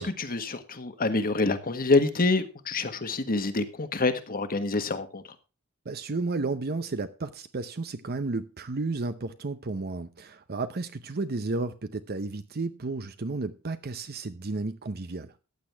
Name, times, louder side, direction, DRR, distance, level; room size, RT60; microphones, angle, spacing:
voice 1, 0.0-5.2, left 3 dB, 40° left, 1.5 m, -26 dB
voice 2, 5.9-15.3, right 3 dB, 45° right, 0.7 m, -32 dB
15.0 x 9.8 x 3.5 m
head